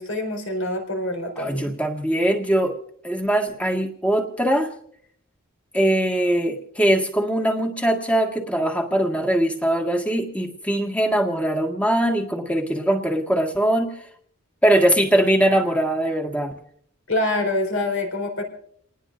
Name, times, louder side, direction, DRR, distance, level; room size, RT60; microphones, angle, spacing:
voice 1, 0.0-1.7 17.1-18.4, left 2 dB, 70° left, 3 dB, 4.3 m, -25 dB
voice 2, 1.4-2.7 3.0-4.7 5.7-13.9 14.6-16.5, right 1 dB, 5° left, 2 dB, 1.7 m, -21 dB
29.0 x 19.5 x 2.5 m, 0.65 s
head